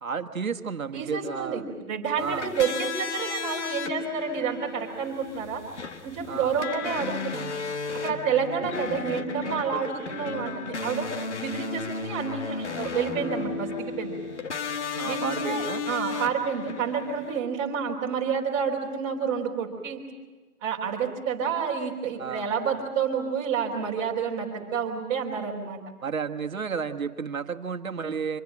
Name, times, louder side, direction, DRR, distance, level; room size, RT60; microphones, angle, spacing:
voice 1, 0.0-1.7 2.2-2.5 6.3-6.6 14.9-15.8 22.2-22.5 26.0-28.4, right 6 dB, 60° right, 6 dB, 1.6 m, -32 dB
voice 2, 0.9-1.6 1.9-5.6 6.0-7.5 8.0-11.1 11.4-14.2 15.0-20.0 20.6-25.8, right 6 dB, 15° right, -1 dB, 3.3 m, -29 dB
sound 1, 2.2-17.4, left 5 dB, 45° left, 1.6 m, -34 dB
25.5 x 21.0 x 7.6 m, 1.3 s
figure-of-eight pair, 155°, 46 cm